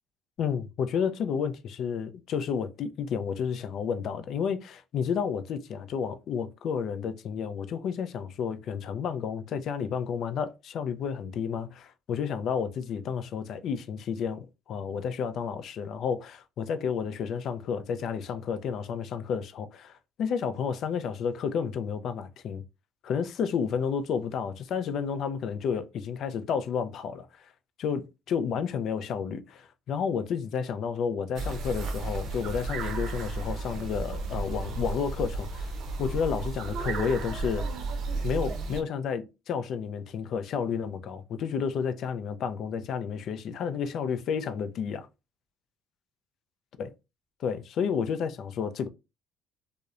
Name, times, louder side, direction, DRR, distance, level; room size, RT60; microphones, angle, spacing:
voice 1, 0.4-22.6 23.0-27.5 27.8-37.7 38.2-45.1 46.8-46.9 47.4-48.9, left 7 dB, 60° left, 0.3 m, -31 dB
sound 1, 31.4-38.8, right 3 dB, 65° right, 0.6 m, -33 dB
2.7 x 2.0 x 2.3 m
supercardioid pair, 95°, 0 cm